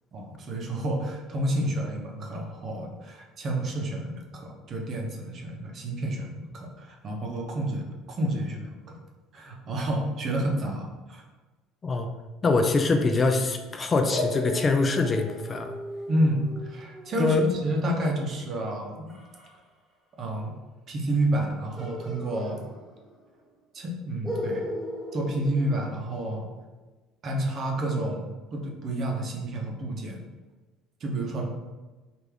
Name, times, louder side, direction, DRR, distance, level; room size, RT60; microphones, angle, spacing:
voice 1, 0.1-8.7 9.3-11.2 16.1-19.1 20.2-20.5 20.9-22.7 23.7-24.7 25.1-26.5 27.2-30.2 31.0-31.5, right 1 dB, 45° right, 1 dB, 0.7 m, -29 dB
voice 2, 12.4-15.7 17.2-17.4, left 3 dB, 30° left, 5 dB, 0.4 m, -24 dB
sound 1, 14.1-19.5 21.8-23.2 23.5-23.6 24.2-26.4, left 1 dB, 5° right, 1.5 m, -37 dB
3.3 x 2.5 x 3.4 m, 1.2 s
hypercardioid pair, 80°, 0 cm